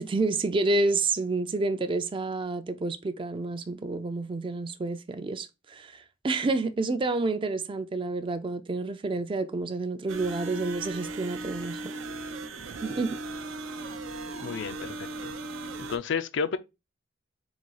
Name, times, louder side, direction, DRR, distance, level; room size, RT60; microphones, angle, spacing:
voice 1, 0.0-11.9 12.8-13.2, right 3 dB, 25° right, 0.4 m, -29 dB
sound 1, 10.1-16.0, right 2 dB, 85° right, 0.6 m, -37 dB
voice 2, 14.4-15.3 15.8-16.6, left 6 dB, 65° left, 0.4 m, -31 dB
4.0 x 2.3 x 4.6 m
head